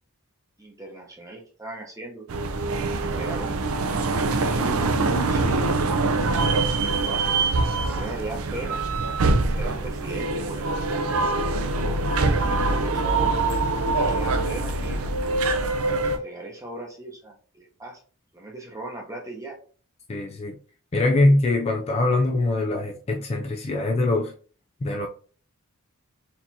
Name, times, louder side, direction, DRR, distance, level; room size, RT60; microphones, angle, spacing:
voice 1, 0.6-2.3 3.0-3.6 4.1-6.5 7.0-7.2 7.8-8.8 9.5-13.4 14.0-15.1 16.2-18.0 18.3-19.6, right 2 dB, 15° right, 0.8 m, -38 dB
sound 1, 2.3-16.2, right 3 dB, 75° right, 0.5 m, -24 dB
voice 2, 20.1-20.6 20.9-24.3 24.8-25.1, left 2 dB, 30° left, 0.3 m, -22 dB
4.3 x 2.8 x 2.7 m
head